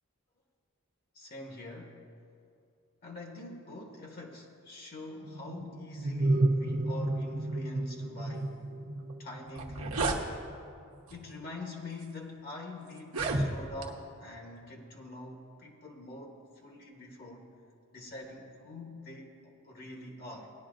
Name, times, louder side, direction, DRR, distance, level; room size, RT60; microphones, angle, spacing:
voice 1, 1.1-2.0 3.0-8.7 9.2-10.2 11.1-17.5 17.9-20.5, left 2 dB, 45° left, 1 dB, 1.0 m, -45 dB
sound 1, 5.2-10.5, right 2 dB, 45° right, 0.6 m, -32 dB
sound 2, 9.1-9.2 9.5-10.2 11.1-11.3 12.0-12.1 13.0-13.9, right 2 dB, 80° right, 1.1 m, -31 dB
18.5 x 11.0 x 2.5 m, 2.5 s
head